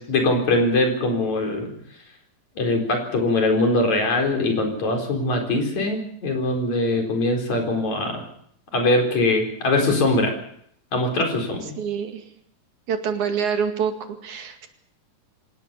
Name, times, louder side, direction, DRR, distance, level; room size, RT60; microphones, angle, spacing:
voice 1, 0.1-1.7 2.6-8.2 8.7-10.3 10.9-11.7, left 2 dB, 65° left, 2 dB, 5.8 m, -22 dB
voice 2, 11.8-12.2 12.9-14.7, right 7 dB, 75° right, 6 dB, 3.6 m, -26 dB
26.0 x 18.0 x 7.0 m, 0.67 s
omnidirectional pair, 3.5 m